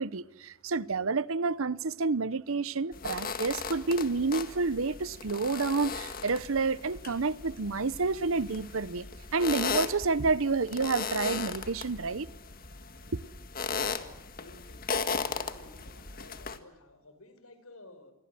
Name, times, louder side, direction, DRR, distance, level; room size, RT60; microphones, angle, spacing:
voice 1, 0.0-9.0 9.3-12.3, right 4 dB, 70° right, 0.9 m, -29 dB
sound 1, 2.9-16.6, left 5 dB, 40° left, 1.8 m, -37 dB
voice 2, 13.6-14.1 14.3-14.9 15.1-18.1, left 2 dB, 85° left, 5.0 m, -53 dB
27.5 x 21.5 x 7.7 m
head